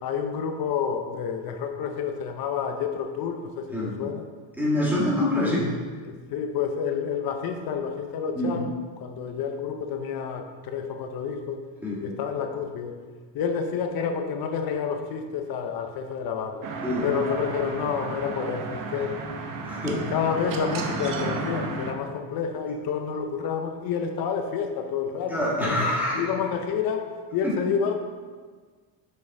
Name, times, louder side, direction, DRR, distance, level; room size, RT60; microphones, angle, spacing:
voice 1, 0.0-4.3 6.0-11.6 12.0-13.0 13.3-16.7 17.0-19.2 19.8-25.9 26.1-28.0, left 6 dB, 50° left, 5 dB, 0.6 m, -29 dB
voice 2, 4.6-5.7 8.4-8.5 11.8-12.0 16.8-17.1 19.7-20.0 25.3-26.2, left 1 dB, 5° right, -6 dB, 1.5 m, -25 dB
sound 1, 16.6-21.9, right 3 dB, 40° right, 0.8 m, -33 dB
6.5 x 5.3 x 3.7 m, 1.5 s
cardioid pair, 140°, 49 cm